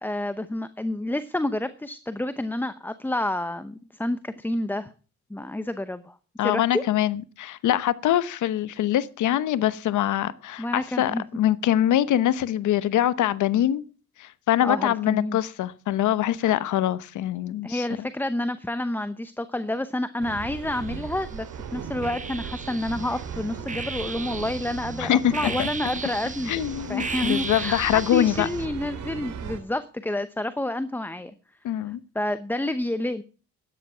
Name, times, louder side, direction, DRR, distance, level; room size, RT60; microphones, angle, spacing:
voice 1, 0.0-4.9 5.3-6.1 6.4-6.8 10.6-11.2 14.6-15.4 16.4-16.6 17.6-21.5 21.7-31.3 31.7-31.8 32.1-33.2, left 1 dB, 5° left, 0.8 m, -29 dB
voice 2, 6.4-13.8 14.2-18.1 25.0-25.7 26.5-28.5 31.6-32.0, left 12 dB, 75° left, 1.0 m, -24 dB
sound 1, 20.2-29.6, right 7 dB, 80° right, 3.1 m, -37 dB
sound 2, 20.6-21.4 22.0-28.7, right 4 dB, 25° right, 1.3 m, -36 dB
12.5 x 10.0 x 5.7 m
cardioid pair, 90°, 30 cm